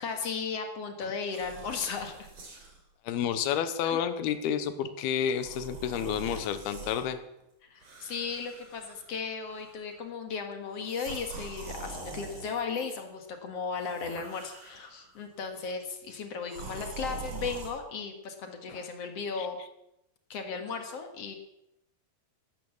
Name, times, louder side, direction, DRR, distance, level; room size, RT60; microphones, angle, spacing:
voice 1, 0.0-2.2 3.8-4.0 7.6-19.6 20.3-21.3, left 5 dB, 50° left, 5 dB, 2.1 m, -36 dB
sound 1, 1.2-2.8 3.5-3.7 5.3-7.0 7.8-9.2 9.5-9.9 10.7-13.0 13.7-15.1 16.5-17.7, right 4 dB, 45° right, 4.3 m, -44 dB
voice 2, 3.0-7.2 18.7-18.8 19.4-19.5, left 8 dB, 80° left, 11 dB, 2.9 m, -30 dB
14.0 x 12.5 x 7.1 m, 0.85 s
omnidirectional pair, 4.5 m